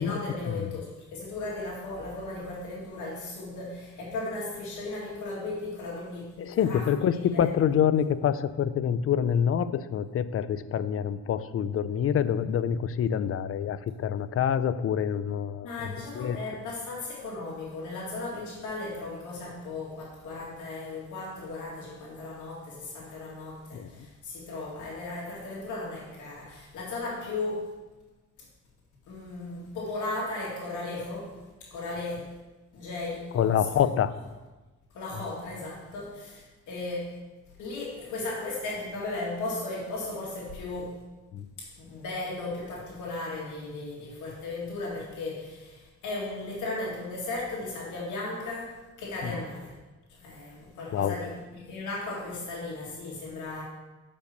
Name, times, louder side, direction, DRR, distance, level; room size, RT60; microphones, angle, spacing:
voice 1, 0.0-7.5 15.6-27.7 29.1-32.4 32.7-33.6 34.9-37.2 37.6-41.0 41.6-49.7 50.1-53.6, left 2 dB, 75° left, -4 dB, 2.1 m, -36 dB
voice 2, 6.4-15.7 16.2-16.4 23.7-23.9 33.3-34.1 41.3-41.5 49.2-49.3 50.9-51.1, left 8 dB, 50° left, 14 dB, 0.5 m, -26 dB
6.6 x 5.3 x 6.7 m, 1.2 s
cardioid pair, 90°, 30 cm